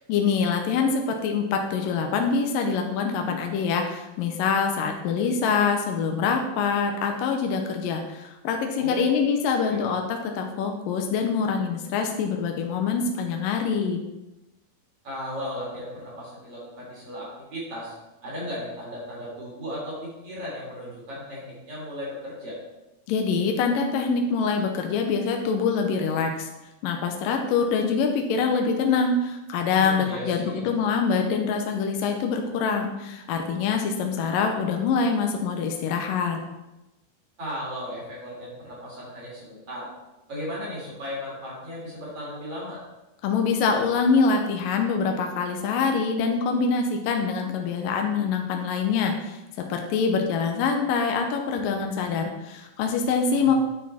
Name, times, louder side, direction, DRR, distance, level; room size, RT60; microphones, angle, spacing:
voice 1, 0.1-14.0 23.1-26.5 26.8-36.4 43.2-53.6, left 5 dB, 75° left, 3 dB, 2.4 m, -25 dB
voice 2, 8.8-9.1 9.7-9.8 15.0-17.9 18.2-22.6 29.7-30.6 37.4-39.9 40.3-42.8 53.3-53.6, equal, 40° right, -6 dB, 4.3 m, -36 dB
9.5 x 8.6 x 4.3 m, 0.99 s
omnidirectional pair, 4.3 m